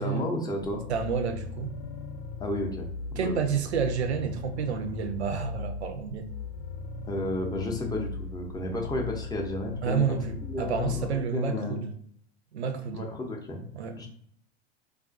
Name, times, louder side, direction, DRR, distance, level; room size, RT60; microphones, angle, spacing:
voice 1, 0.0-0.8 2.4-3.6 7.1-10.2 10.4-11.8 12.9-13.7 14.0-14.1, left 2 dB, 10° left, 0 dB, 0.5 m, -32 dB
sound 1, 0.6-11.2, left 4 dB, 85° left, 0.5 m, -39 dB
voice 2, 0.9-1.8 3.2-6.3 9.8-11.9 12.5-13.1 13.7-14.0, right 6 dB, 85° right, 8 dB, 0.5 m, -30 dB
2.4 x 2.3 x 2.4 m, 0.63 s
hypercardioid pair, 95°, 32 cm